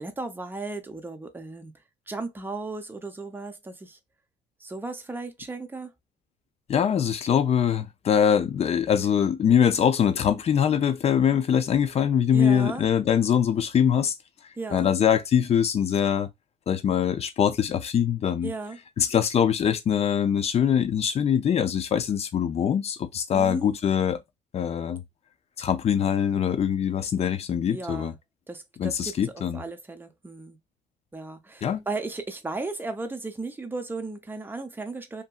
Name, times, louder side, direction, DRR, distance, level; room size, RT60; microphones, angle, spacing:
voice 1, 0.0-1.7 2.1-4.0 4.6-5.9 12.3-12.9 14.6-14.9 18.4-18.8 23.3-23.7 27.7-28.2 28.5-30.6 31.1-35.2, right 3 dB, 10° right, 0.5 m, -35 dB
voice 2, 6.7-14.1 14.7-16.3 16.7-18.5 19.0-24.2 24.5-25.0 25.6-28.1 28.8-29.6 31.6-31.8, left 8 dB, 40° left, 0.5 m, -23 dB
2.8 x 2.6 x 2.2 m
cardioid pair, 110°, 17 cm